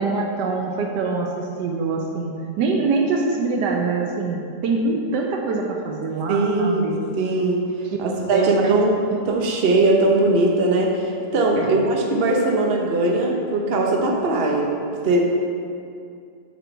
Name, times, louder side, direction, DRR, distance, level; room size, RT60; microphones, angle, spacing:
voice 1, 0.0-6.9 8.3-8.7 9.1-9.2 11.6-11.8, right 3 dB, 80° right, 1 dB, 1.4 m, -24 dB
voice 2, 6.3-6.8 7.2-7.6 8.0-14.8 15.0-15.2, right 2 dB, 45° right, 0 dB, 1.0 m, -20 dB
7.4 x 6.8 x 4.1 m, 2.4 s
omnidirectional pair, 1.8 m